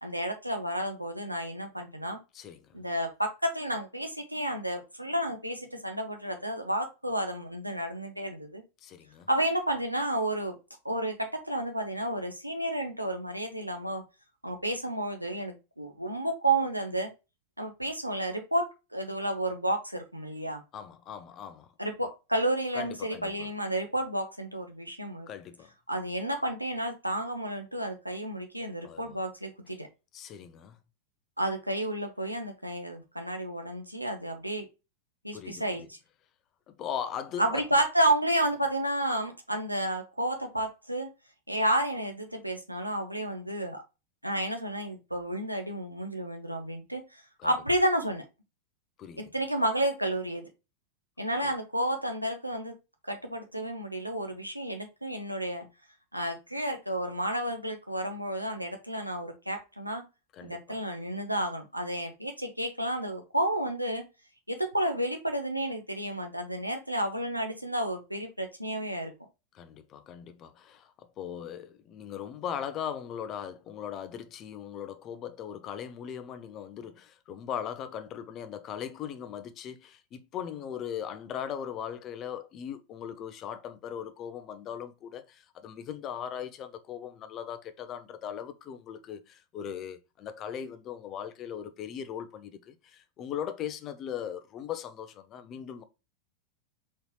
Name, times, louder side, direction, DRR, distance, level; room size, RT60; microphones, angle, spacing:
voice 1, 0.0-2.2 2.7-8.6 9.3-10.6 10.8-14.0 14.4-17.1 17.6-20.6 21.8-25.3 25.9-29.9 31.4-34.7 35.2-36.0 37.4-41.1 41.5-43.8 44.2-48.2 49.2-50.5 51.2-52.8 53.0-55.7 56.1-60.0 60.4-64.0 64.5-69.1, right 1 dB, 90° right, 1.0 m, -31 dB
voice 2, 2.3-2.8 8.8-9.3 20.7-21.7 22.7-23.5 25.3-25.7 28.8-29.2 30.1-30.8 35.3-35.6 36.7-37.7 47.4-47.5 49.0-49.2 51.4-51.5 60.3-60.8 69.5-95.8, left 8 dB, 35° left, 0.7 m, -39 dB
4.3 x 4.0 x 2.9 m
figure-of-eight pair, 90°, 0 cm